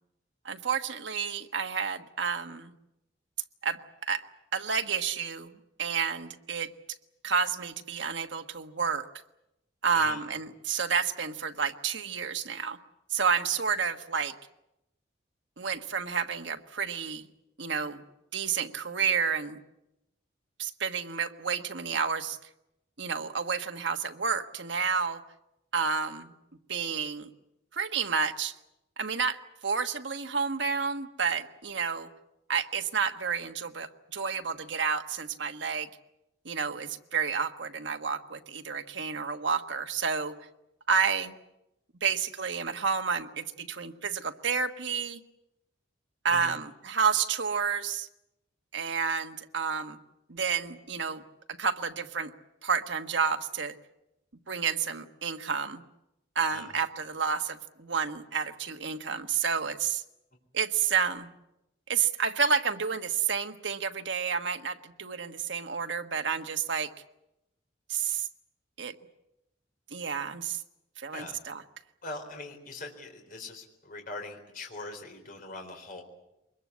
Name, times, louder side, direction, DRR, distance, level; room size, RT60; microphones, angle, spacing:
voice 1, 0.4-2.7 3.6-4.3 4.5-6.7 7.2-9.1 9.8-12.8 13.1-14.3 15.6-17.3 17.6-18.0 18.3-19.6 20.6-22.5 23.0-25.2 25.7-26.3 26.7-27.3 27.7-28.5 29.0-32.1 32.5-35.9 36.4-40.3 40.9-41.3 42.0-45.2 46.2-48.1 48.7-50.0 50.3-51.2 51.6-52.3 52.6-53.7 54.5-55.8 56.3-60.0 60.5-61.3 61.9-66.9 67.9-68.3 68.8-68.9 69.9-70.6 71.0-71.6, right 6 dB, 70° right, 7 dB, 1.4 m, -30 dB
voice 2, 56.5-56.8 71.1-71.4 72.0-76.0, left 2 dB, 50° left, 3 dB, 4.1 m, -42 dB
24.0 x 21.5 x 8.4 m, 0.90 s
head